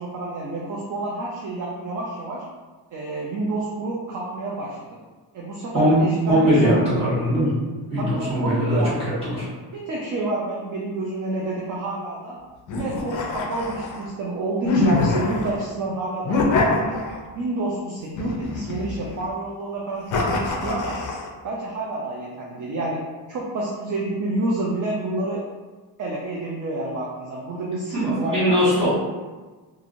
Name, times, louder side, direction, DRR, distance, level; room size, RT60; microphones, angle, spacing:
voice 1, 0.0-2.4 2.9-4.8 5.3-6.8 8.0-8.9 9.7-12.4 12.7-17.0 17.3-21.0 21.4-23.0 23.3-25.4 26.0-28.8, right 2 dB, 50° right, -4 dB, 0.4 m, -29 dB
voice 2, 6.3-7.5 7.9-8.8 9.2-9.5 27.9-28.9, equal, 15° right, -12 dB, 1.3 m, -20 dB
sound 1, 12.7-14.1 14.6-15.6 16.2-17.4 18.2-19.2 20.1-21.3, left 3 dB, 45° left, 0.5 m, -24 dB
2.9 x 2.5 x 2.5 m, 1.3 s
wide cardioid pair, 155°, 43 cm